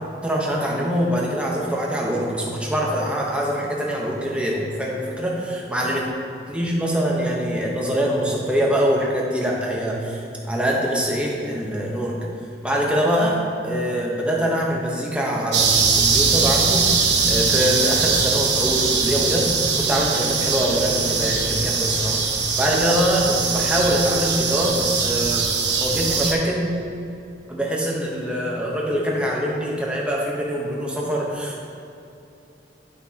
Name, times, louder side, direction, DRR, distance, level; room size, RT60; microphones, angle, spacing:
voice 1, 0.2-6.1 6.5-12.3 12.6-25.5 25.8-26.7 27.5-31.6, equal, 5° right, -3 dB, 0.9 m, -24 dB
sound 1, 15.5-26.3, right 5 dB, 80° right, 0.9 m, -21 dB
10.5 x 5.9 x 2.9 m, 2.8 s
head